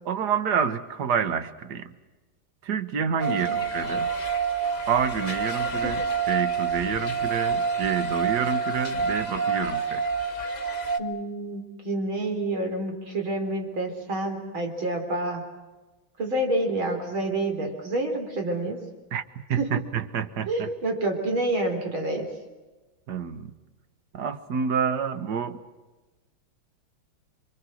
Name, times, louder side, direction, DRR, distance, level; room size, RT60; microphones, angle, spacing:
voice 1, 0.1-1.9 2.6-4.1 4.9-6.0 6.3-10.0 19.1-19.2 19.5-20.7 23.1-23.5 24.1-25.6, right 7 dB, 55° right, 10 dB, 1.8 m, -28 dB
sound 1, 3.2-11.0, right 5 dB, 25° left, 1.1 m, -27 dB
voice 2, 3.3-3.6 5.8-5.9 11.0-15.4 16.2-18.8 19.6-19.8 20.5-22.3, right 2 dB, 80° right, 4 dB, 4.7 m, -28 dB
28.5 x 24.5 x 6.3 m, 1.2 s
omnidirectional pair, 2.2 m